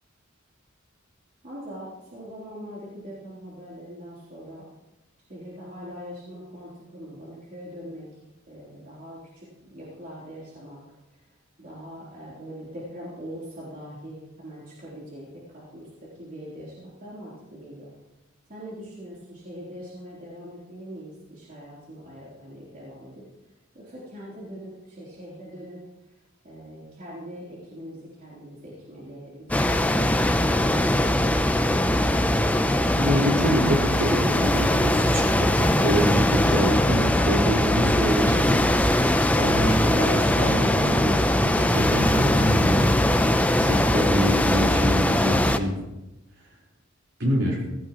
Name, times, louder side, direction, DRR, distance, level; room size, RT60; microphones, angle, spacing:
voice 1, 1.4-4.6 5.3-8.1 8.5-10.8 11.6-15.9 16.2-17.9 18.5-23.2 23.7-25.8 26.4-31.4, equal, 45° right, -7 dB, 3.6 m, -42 dB
sound 1, 29.5-45.6, left 1 dB, 5° left, 0.6 m, -21 dB
voice 2, 32.8-39.1 39.4-45.8 47.2-47.6, equal, 60° right, -3 dB, 4.7 m, -26 dB
18.0 x 16.0 x 3.1 m, 1.0 s
head